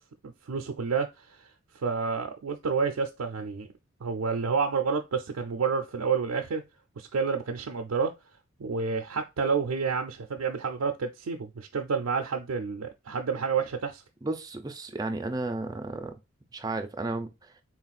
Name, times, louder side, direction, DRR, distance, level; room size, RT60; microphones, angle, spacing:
voice 1, 0.2-1.4 1.8-3.7 4.0-6.6 7.0-8.1 8.6-14.0, right 5 dB, 85° right, 0.4 m, -29 dB
voice 2, 14.2-16.1 16.5-17.5, right 2 dB, 20° right, 0.4 m, -33 dB
3.9 x 2.4 x 4.0 m
head